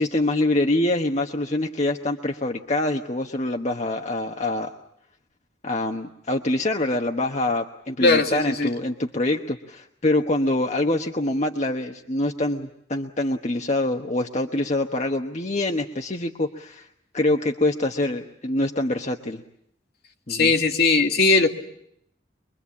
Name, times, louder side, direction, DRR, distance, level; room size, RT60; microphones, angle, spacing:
voice 1, 0.0-4.7 5.6-16.9 17.1-19.4 20.3-20.5, left 2 dB, 40° left, 3 dB, 1.1 m, -25 dB
voice 2, 8.0-8.7 20.3-21.5, left 3 dB, 60° left, 4 dB, 2.1 m, -19 dB
24.0 x 23.0 x 8.5 m, 0.74 s
head